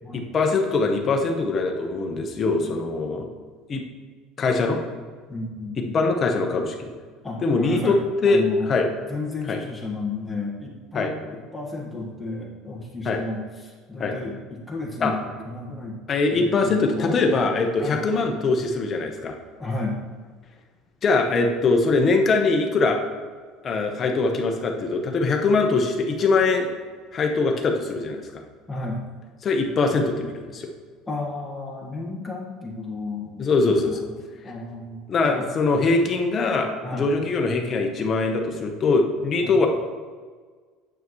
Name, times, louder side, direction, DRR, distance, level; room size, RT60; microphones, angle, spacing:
voice 1, 0.1-3.3 3.7-3.8 4.4-4.8 5.9-6.8 7.4-8.0 8.2-8.9 9.5-9.6 10.9-11.1 13.1-13.2 14.0-14.1 15.0-15.1 16.1-19.4 21.0-23.0 23.6-26.7 27.1-28.2 29.4-30.7 33.4-34.1 35.1-39.7, left 3 dB, 30° left, 3 dB, 1.1 m, -22 dB
voice 2, 5.3-6.0 7.2-7.9 8.2-8.7 9.0-16.0 16.4-17.2 17.8-18.0 19.6-20.0 28.7-29.0 31.1-33.5 33.8-35.0 35.3-35.5 36.8-37.1 39.4-39.6, left 2 dB, 10° left, -3 dB, 1.6 m, -32 dB
9.2 x 6.9 x 3.2 m, 1.5 s
cardioid pair, 135°, 0 cm